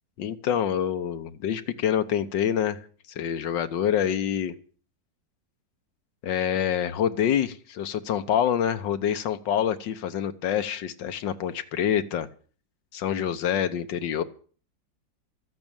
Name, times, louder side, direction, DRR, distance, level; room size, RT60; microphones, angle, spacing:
voice 1, 0.2-4.5 6.2-12.3 12.9-14.2, left 9 dB, 80° left, 10 dB, 1.7 m, -26 dB
13.5 x 8.7 x 8.8 m, 0.43 s
omnidirectional pair, 1.9 m